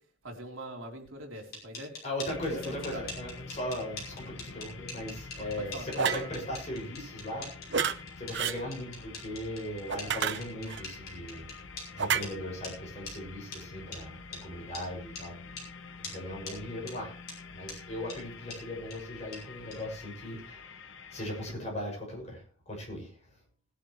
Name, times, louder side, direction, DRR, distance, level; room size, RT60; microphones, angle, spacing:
voice 1, 0.2-1.9 2.3-3.1 5.4-5.9, right 1 dB, 70° right, 2 dB, 3.4 m, -42 dB
sound 1, 1.3-11.9 12.2-12.3 12.6-12.7 13.1-13.2 13.5-13.6 13.9-14.0 14.3-14.4 14.7-14.9 15.1-15.3 15.6-15.7 16.0-16.2 16.5-16.6 16.9-17.0 17.3-17.4 17.7-17.8 18.1-18.2 18.5-18.6 18.9-19.0 19.3-19.4 19.7-19.8, left 3 dB, 50° left, 5.6 m, -42 dB
voice 2, 2.0-7.5 8.2-11.5 11.9-15.4 16.0-17.1 17.5-20.7 21.1-23.3, left 1 dB, 30° left, -1 dB, 6.4 m, -38 dB
sound 2, 2.3-21.5, left 4 dB, 65° left, 1.1 m, -47 dB
sound 3, 6.0-6.3 7.7-8.0 8.3-8.6 9.9-10.8 12.0-12.2, right 7 dB, 55° right, 0.8 m, -29 dB
20.0 x 10.5 x 3.2 m, 0.40 s
head